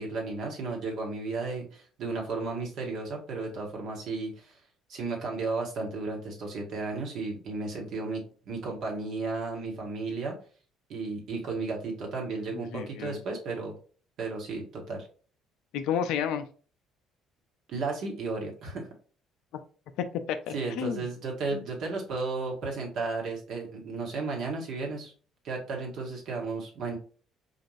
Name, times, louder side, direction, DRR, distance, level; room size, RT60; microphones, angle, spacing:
voice 1, 0.0-4.6 4.9-10.3 10.9-13.7 14.2-15.1 17.7-18.9 20.5-25.1 25.4-27.0, right 3 dB, 60° right, 0 dB, 1.3 m, -34 dB
voice 2, 12.5-13.2 15.7-16.4 20.0-21.1 21.5-21.6, left 8 dB, 65° left, 10 dB, 0.4 m, -31 dB
4.1 x 2.5 x 3.1 m, 0.40 s
hypercardioid pair, 55°, 0 cm